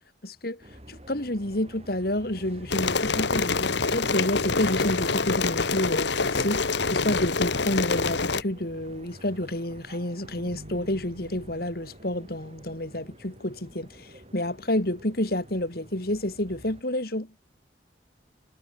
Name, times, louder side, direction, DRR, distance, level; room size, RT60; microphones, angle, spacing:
voice 1, 0.2-0.6 0.9-17.4, left 1 dB, 55° left, 3.2 m, -29 dB
sound 1, 0.6-16.8, right 1 dB, 35° right, 7.2 m, -49 dB
sound 2, 2.7-8.4, left 4 dB, 70° left, 1.5 m, -26 dB
sound 3, 3.3-15.6, right 1 dB, 65° right, 5.5 m, -51 dB
head